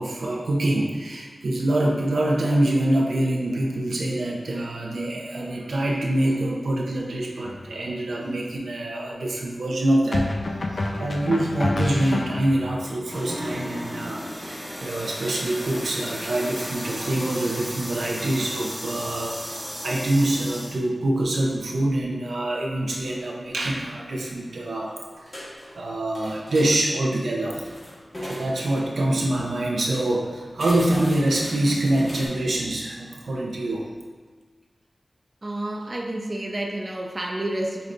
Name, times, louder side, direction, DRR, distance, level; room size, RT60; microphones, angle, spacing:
voice 1, 0.0-10.3 10.7-25.4 25.7-27.7 28.2-33.9, right 1 dB, 85° right, -2 dB, 0.6 m, -25 dB
sound 1, 7.5-7.7 10.1-12.8, left 2 dB, 60° left, 0.4 m, -28 dB
sound 2, 13.1-20.8, equal, 5° left, 0.8 m, -34 dB
sound 3, 23.1-23.2 23.5-23.6 24.3-24.8 25.1-25.8 26.1-26.7 27.3-29.0 29.5-29.6 29.8-30.1 30.6-32.3, equal, 35° left, 1.4 m, -39 dB
voice 2, 35.4-37.9, right 1 dB, 35° right, 0 dB, 0.5 m, -30 dB
5.2 x 3.3 x 2.6 m, 1.5 s
cardioid pair, 50°, 0 cm